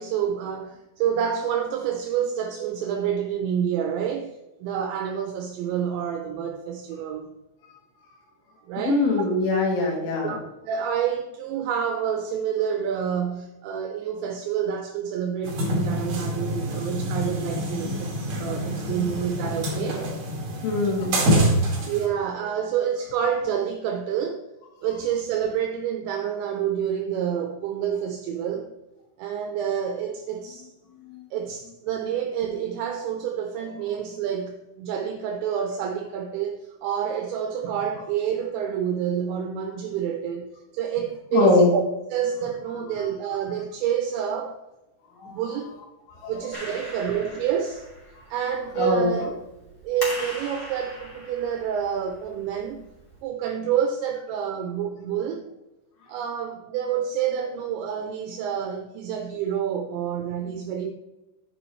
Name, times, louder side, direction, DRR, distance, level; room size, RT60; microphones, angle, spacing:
voice 1, 0.0-7.3 8.7-9.0 10.2-10.4 10.7-20.1 21.9-24.4 24.8-28.7 29.2-30.7 31.3-40.5 40.7-41.8 42.1-44.6 45.3-45.7 46.3-47.9 48.3-49.3 49.8-52.8 53.2-55.4 56.1-60.9, right 8 dB, 80° right, 4 dB, 2.9 m, -28 dB
voice 2, 8.8-10.4 20.6-21.3 21.7-21.9 30.9-31.2 41.3-41.7 42.7-43.0 45.2-45.4 46.1-46.6 48.2-48.3 48.8-49.1, left 3 dB, 75° left, -2 dB, 4.7 m, -23 dB
sound 1, 15.4-22.1, equal, 45° right, 2.5 m, -26 dB
Clapping, 46.5-53.2, equal, 20° left, 3.8 m, -40 dB
10.5 x 8.8 x 3.1 m, 1.0 s
omnidirectional pair, 5.6 m